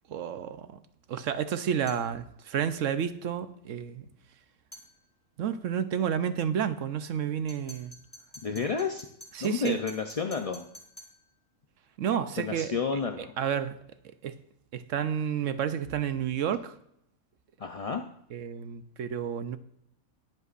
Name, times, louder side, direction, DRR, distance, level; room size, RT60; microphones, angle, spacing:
voice 1, 0.1-0.7 1.1-4.0 5.4-7.9 9.3-9.8 12.0-12.7 13.2-13.8 14.2-14.4 14.7-16.7 18.3-19.6, right 8 dB, 70° right, 1.0 m, -30 dB
sound 1, 1.9-2.1 4.7-4.9 7.5-11.2, equal, 20° left, 3.1 m, -49 dB
voice 2, 8.4-9.1 9.4-10.6 12.4-13.3 17.6-18.0, left 5 dB, 40° left, 0.5 m, -31 dB
21.0 x 8.1 x 2.5 m
omnidirectional pair, 1.4 m